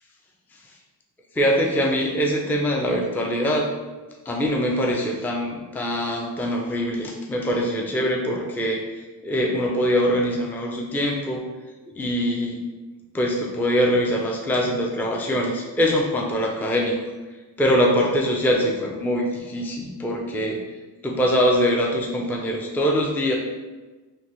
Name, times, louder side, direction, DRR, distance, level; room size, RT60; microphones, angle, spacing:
voice 1, 1.4-3.7 4.3-8.8 9.2-11.4 12.0-12.6 13.1-17.0 17.6-20.6 21.0-23.4, equal, 5° left, 0 dB, 0.4 m, -23 dB
3.2 x 2.1 x 2.9 m, 1.2 s
cardioid pair, 45°, 47 cm